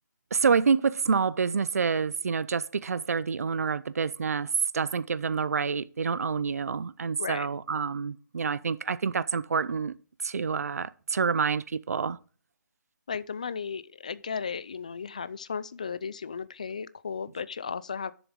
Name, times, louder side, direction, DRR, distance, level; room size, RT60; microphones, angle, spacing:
voice 1, 0.3-10.0 10.2-12.2, right 5 dB, 55° right, 0.5 m, -27 dB
voice 2, 13.1-18.1, left 6 dB, 25° left, 0.3 m, -35 dB
7.1 x 6.9 x 6.4 m
hypercardioid pair, 170°, 10 cm